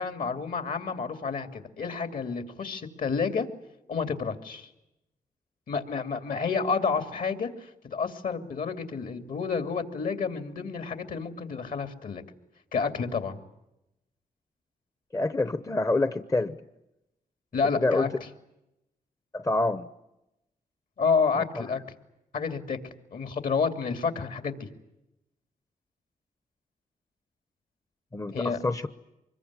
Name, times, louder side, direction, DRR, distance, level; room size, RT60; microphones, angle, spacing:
voice 1, 0.0-3.5 3.9-4.7 5.7-12.2 12.7-13.4 17.5-18.3 21.0-21.8 22.3-22.8 23.1-24.7 28.3-28.6, left 5 dB, 65° left, 8 dB, 2.7 m, -29 dB
voice 2, 15.1-16.6 17.8-18.1 19.3-19.9 28.1-28.9, left 2 dB, 20° left, 12 dB, 0.9 m, -26 dB
25.0 x 22.0 x 9.8 m, 0.90 s
cardioid pair, 105°, 15 cm